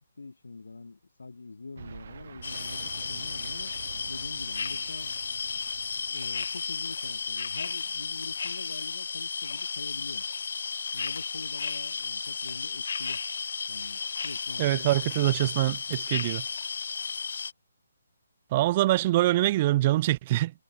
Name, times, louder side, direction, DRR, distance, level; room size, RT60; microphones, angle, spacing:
voice 1, 0.0-3.7 4.1-5.1 6.1-10.2 10.9-13.2 13.7-14.9 15.4-15.5, left 3 dB, 85° left, 1.0 m, -44 dB
sound 1, 1.8-8.7, right 7 dB, 55° right, 1.5 m, -47 dB
sound 2, 2.4-17.5, left 5 dB, 65° left, 0.4 m, -34 dB
voice 2, 14.6-16.4 18.5-20.5, right 16 dB, 30° right, 0.3 m, -24 dB
hypercardioid pair, 150°, 0 cm